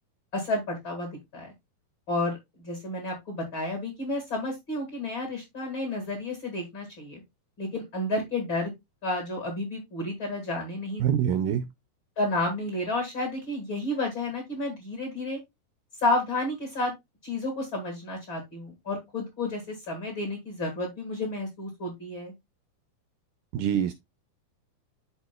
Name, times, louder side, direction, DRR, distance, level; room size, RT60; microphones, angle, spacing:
voice 1, 0.3-1.5 2.1-2.4 2.6-7.2 7.6-8.7 9.0-11.1 12.2-15.4 16.0-16.9 17.2-22.3, left 2 dB, 45° left, 1.9 m, -31 dB
voice 2, 11.0-11.7 23.5-23.9, right 9 dB, 80° right, 1.9 m, -25 dB
11.5 x 4.3 x 2.2 m
omnidirectional pair, 4.3 m